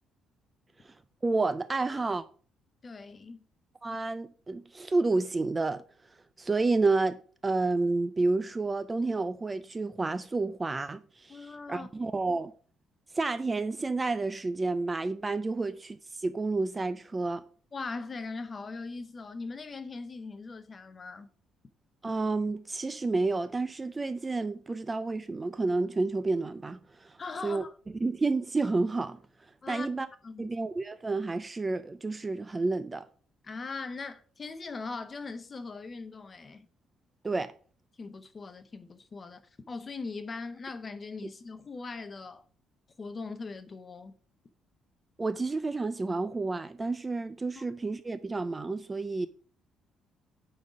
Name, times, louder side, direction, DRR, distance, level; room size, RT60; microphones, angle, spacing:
voice 1, 0.8-2.2 3.8-12.5 13.1-17.4 22.0-27.6 28.0-30.1 30.4-33.1 37.2-37.5 45.2-49.3, right 3 dB, 15° right, 0.3 m, -30 dB
voice 2, 2.8-3.5 11.3-11.9 17.7-21.3 27.2-27.7 29.6-29.9 30.2-30.5 33.4-36.7 38.0-39.4 39.7-42.4 43.0-44.2 47.6-47.7, left 4 dB, 25° left, 0.7 m, -40 dB
8.7 x 4.0 x 4.8 m
cardioid pair, 155°, 0 cm